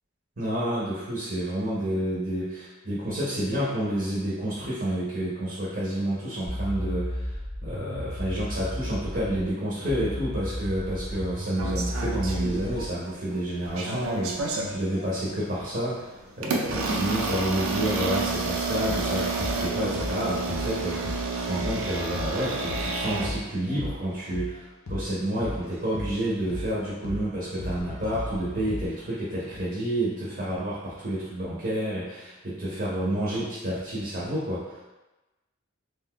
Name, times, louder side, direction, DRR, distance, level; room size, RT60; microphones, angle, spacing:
voice 1, 0.4-7.3 7.6-16.1 16.4-34.8, right 1 dB, 40° right, -6 dB, 0.6 m, -29 dB
sound 1, 6.5-9.5 9.9-12.9, equal, 25° left, 0.5 m, -33 dB
sound 2, 11.1-11.4 12.3-13.6 14.5-15.5 15.8-15.9 16.7-17.2 17.7-17.8 18.9-20.2 20.5-20.7 21.0-22.4 22.7-22.9 23.2-24.6 24.9-25.1 25.4-26.7 27.0-27.2 27.6-28.9, left 1 dB, 85° left, 0.7 m, -36 dB
sound 3, 11.6-13.1 13.4-14.8 15.4-15.6 16.4-23.3, right 3 dB, 80° right, 0.4 m, -29 dB
2.5 x 2.2 x 3.6 m, 1.1 s
head